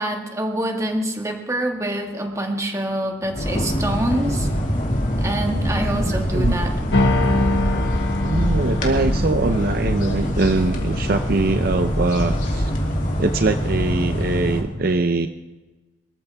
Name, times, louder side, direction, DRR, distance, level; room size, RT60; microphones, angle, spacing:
voice 1, 0.0-4.5 5.2-6.7, right 1 dB, 15° right, 3 dB, 1.7 m, -25 dB
sound 1, 3.2-9.7, equal, 15° left, 1.2 m, -30 dB
sound 2, 3.3-14.6, equal, 40° left, 2.9 m, -24 dB
voice 2, 5.8-6.6 8.2-12.7 13.2-15.3, right 3 dB, 50° right, 8 dB, 0.6 m, -22 dB
sound 3, 6.9-11.8, left 2 dB, 60° left, 1.5 m, -25 dB
25.0 x 14.0 x 3.5 m, 1.2 s
head